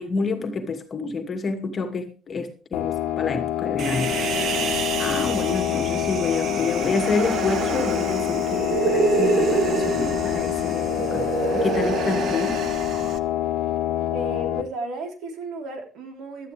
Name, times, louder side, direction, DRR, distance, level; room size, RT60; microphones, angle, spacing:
voice 1, 0.0-4.2 5.0-11.3 11.5-12.6, left 4 dB, 25° left, 2.4 m, -28 dB
sound 1, 2.7-14.6, left 13 dB, 65° left, 1.5 m, -26 dB
Human voice, 3.8-13.2, right 5 dB, 45° right, 1.3 m, -27 dB
voice 2, 14.1-16.5, right 1 dB, 60° right, 4.0 m, -34 dB
17.0 x 12.5 x 3.5 m
cardioid pair, 165°, 0 cm